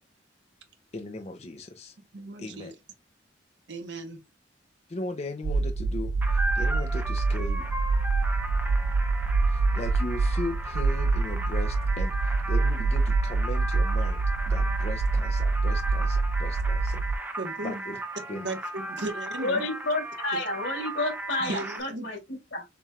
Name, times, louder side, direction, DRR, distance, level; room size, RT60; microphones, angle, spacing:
voice 1, 0.9-1.9 2.4-2.7 4.9-7.7 9.5-17.0 17.6-17.9 18.3-18.4, left 2 dB, 35° left, 0.7 m, -38 dB
voice 2, 2.1-2.7 3.7-4.2 17.4-17.8 18.3-19.6 21.4-22.1, right 2 dB, 65° right, 1.1 m, -36 dB
sound 1, 5.4-17.2, right 3 dB, 80° right, 0.4 m, -26 dB
sound 2, 6.2-21.8, right 1 dB, 10° right, 0.7 m, -36 dB
voice 3, 19.4-22.6, left 2 dB, 80° left, 3.2 m, -30 dB
6.9 x 3.1 x 2.4 m
head